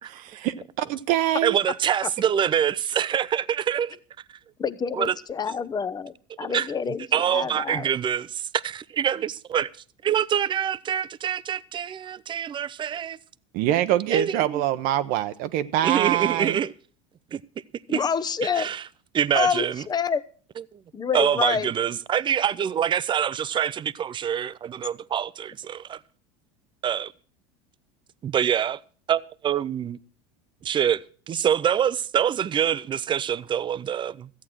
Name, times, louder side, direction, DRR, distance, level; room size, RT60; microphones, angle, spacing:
voice 1, 0.0-1.6 13.5-16.6, right 12 dB, 60° right, 0.7 m, -25 dB
voice 2, 1.4-4.0 4.9-5.1 6.4-6.7 7.1-9.7 10.0-13.2 14.1-14.6 15.8-16.7 17.3-17.4 17.9-18.0 18.6-18.8 19.1-19.8 20.7-20.8 21.1-26.0 26.8-27.1 28.2-28.8 29.1-30.0 30.6-34.3, right 9 dB, 30° right, 0.6 m, -25 dB
voice 3, 4.6-7.9 17.9-18.7 19.3-20.2 20.9-21.7, left 6 dB, 25° left, 0.8 m, -27 dB
14.0 x 8.4 x 6.1 m
supercardioid pair, 95°, 17 cm